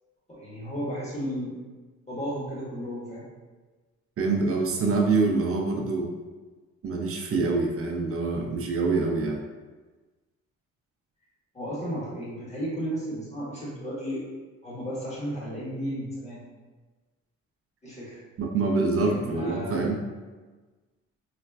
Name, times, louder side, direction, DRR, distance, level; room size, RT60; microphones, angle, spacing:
voice 1, 0.3-1.6 2.1-3.2 11.5-14.3 14.6-16.4 17.8-18.2 19.1-19.8, equal, 20° left, -7 dB, 1.4 m, -33 dB
voice 2, 4.2-6.1 6.8-9.4 18.4-20.0, right 3 dB, 50° right, 1 dB, 0.6 m, -25 dB
4.0 x 2.2 x 2.3 m, 1.3 s
cardioid pair, 90°, 30 cm